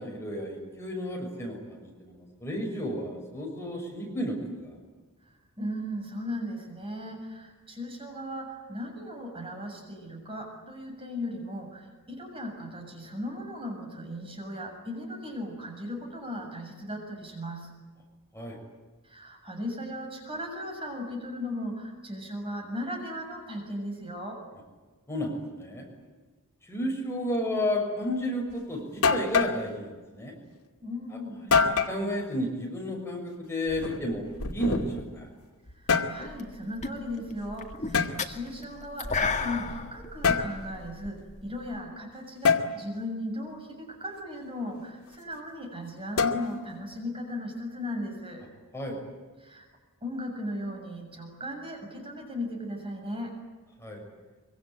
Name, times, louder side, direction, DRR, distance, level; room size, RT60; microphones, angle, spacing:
voice 1, 0.0-4.8 18.3-18.6 25.1-25.8 26.6-30.3 31.4-34.3 34.5-35.3 48.7-49.0 53.8-54.0, left 1 dB, 10° left, 0 dB, 6.5 m, -32 dB
voice 2, 5.6-17.7 19.0-24.4 30.8-31.4 35.7-48.4 49.4-49.7 50.0-53.4, left 1 dB, 25° right, 2 dB, 7.2 m, -37 dB
sound 1, 28.5-28.6 29.0-29.6 31.5-32.0 33.7-35.1 35.7-36.2 37.9-38.1 40.2-40.5 42.4-42.7 46.2-46.7, left 5 dB, 70° left, 2.4 m, -25 dB
sound 2, 36.2-36.5 36.8-41.8, left 4 dB, 35° left, 2.2 m, -33 dB
25.0 x 25.0 x 9.2 m, 1.3 s
head